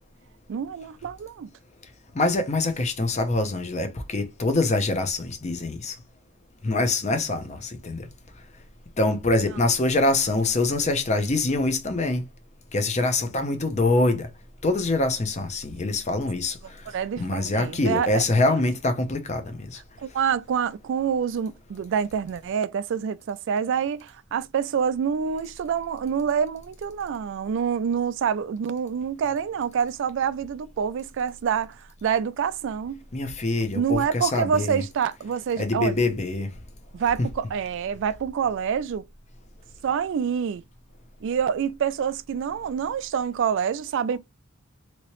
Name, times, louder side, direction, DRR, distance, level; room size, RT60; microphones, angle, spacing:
voice 1, 0.5-1.5 9.5-9.6 16.9-18.2 20.0-33.0 33.7-36.1 36.9-39.0 39.8-40.6 41.2-44.2, right 7 dB, 60° right, 0.3 m, -27 dB
voice 2, 2.1-6.0 6.6-8.0 9.0-12.2 12.7-14.3 14.6-16.8 17.2-19.8 33.1-34.8 35.6-36.5, left 2 dB, 30° left, 0.6 m, -24 dB
3.0 x 2.8 x 3.0 m
head